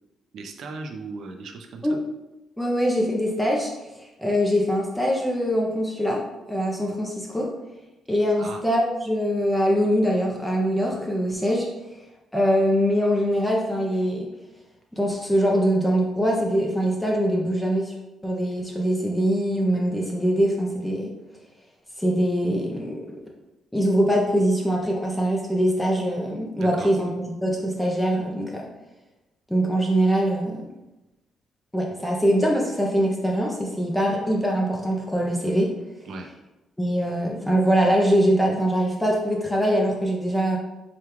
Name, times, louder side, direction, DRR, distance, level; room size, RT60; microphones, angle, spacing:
voice 1, 0.3-2.0 8.4-8.6 26.6-26.9 36.1-36.3, right 3 dB, 70° right, 4 dB, 0.5 m, -37 dB
voice 2, 2.6-6.2 6.5-7.5 8.1-11.7 12.3-14.3 15.0-17.9 18.2-21.1 22.0-23.0 23.7-28.7 29.5-30.6 31.7-35.7 36.8-40.6, equal, 5° left, -2 dB, 0.6 m, -23 dB
4.9 x 2.3 x 3.0 m, 1.0 s
cardioid pair, 90°, 0 cm